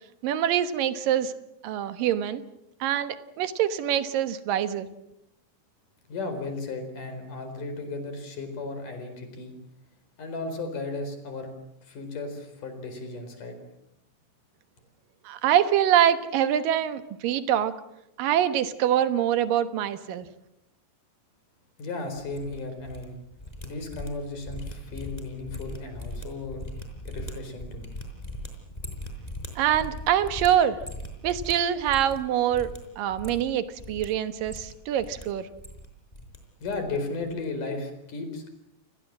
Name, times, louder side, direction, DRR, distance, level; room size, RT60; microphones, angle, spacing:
voice 1, 0.2-1.3 1.6-2.4 2.8-4.9 15.3-17.7 18.2-20.3 29.6-30.8 31.2-35.5, right 10 dB, 75° right, 11 dB, 2.9 m, -25 dB
voice 2, 6.1-9.6 10.2-11.5 11.8-13.6 21.8-23.2 23.6-26.6 27.1-27.9 36.6-38.5, left 3 dB, 65° left, 7 dB, 5.9 m, -35 dB
sound 1, 22.2-23.1 23.3-32.3 32.5-32.8 33.1-34.1 34.4-35.2 35.5-36.4 36.6-37.0 37.2-37.4, equal, 10° left, 4.7 m, -39 dB
29.0 x 20.5 x 7.4 m, 0.84 s
omnidirectional pair, 4.0 m